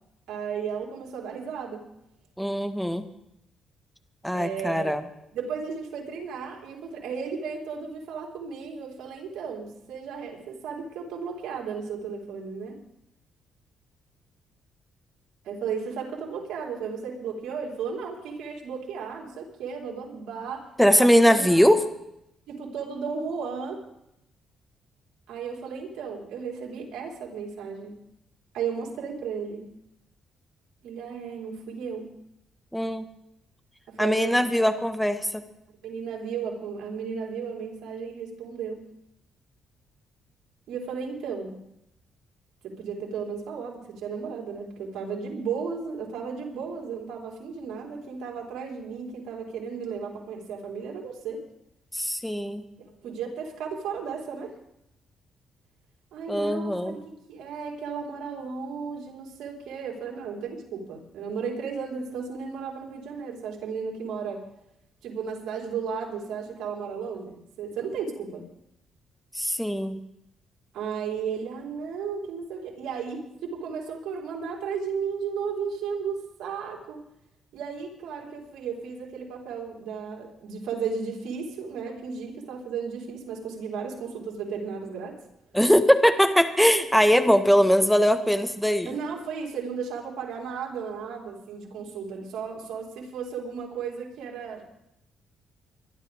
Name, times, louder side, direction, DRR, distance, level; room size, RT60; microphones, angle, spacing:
voice 1, 0.3-1.9 4.3-4.9 5.3-12.8 15.4-20.7 21.0-21.7 22.5-23.8 25.3-28.0 28.5-29.6 30.8-32.1 33.9-34.4 35.8-38.8 40.7-41.6 42.6-51.4 53.0-54.5 56.1-57.0 57.3-64.5 65.0-68.5 70.7-77.0 77.5-85.2 88.9-94.6, right 6 dB, 80° right, -1 dB, 4.5 m, -34 dB
voice 2, 2.4-3.0 4.2-5.0 20.8-21.8 32.7-33.1 34.0-35.4 51.9-52.6 56.3-57.0 69.3-70.0 85.5-89.0, equal, ahead, 8 dB, 1.5 m, -21 dB
23.5 x 12.5 x 3.7 m, 0.82 s
cardioid pair, 90°, 0 cm